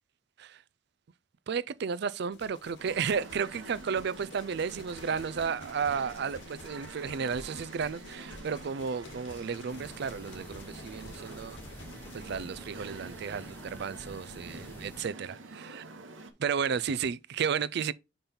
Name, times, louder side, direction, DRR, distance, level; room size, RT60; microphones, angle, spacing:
voice 1, 1.5-11.6 12.1-15.8 16.4-17.9, right 6 dB, 60° right, 0.4 m, -33 dB
sound 1, 2.3-12.5, left 2 dB, 75° left, 1.7 m, -50 dB
sound 2, 2.8-16.3, right 3 dB, 90° right, 1.1 m, -47 dB
sound 3, 9.7-15.0, equal, 10° left, 0.8 m, -49 dB
5.5 x 5.2 x 4.3 m
head